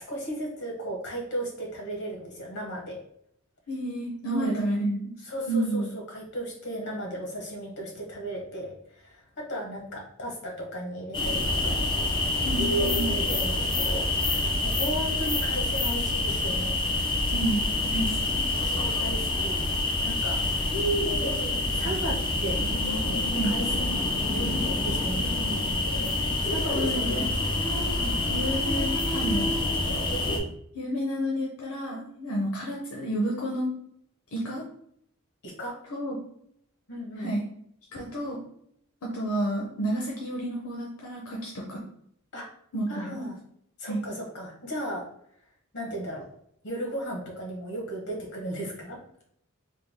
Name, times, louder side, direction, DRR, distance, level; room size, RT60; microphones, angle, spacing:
voice 1, 0.0-3.0 4.3-4.6 5.2-11.7 12.8-16.8 18.6-19.6 20.0-20.4 21.2-22.6 23.4-25.3 26.4-27.3 28.0-28.2 32.2-32.5 35.4-35.8 36.9-37.3 42.3-42.5 42.9-43.4 43.8-45.0 45.7-46.2 46.6-49.0, equal, 55° left, -1 dB, 1.2 m, -36 dB
voice 2, 3.7-5.0 5.5-5.9 12.4-13.1 17.3-17.6 17.9-18.5 23.3-23.5 26.7-27.3 28.3-29.5 30.7-33.7 34.3-34.6 35.9-36.2 37.2-37.4 37.9-38.4 39.0-41.8 42.7-43.3 43.8-44.0, right 1 dB, 75° left, -3 dB, 0.7 m, -30 dB
sound 1, 11.1-30.4, left 2 dB, 20° left, 0.5 m, -27 dB
3.4 x 2.3 x 3.5 m, 0.69 s
head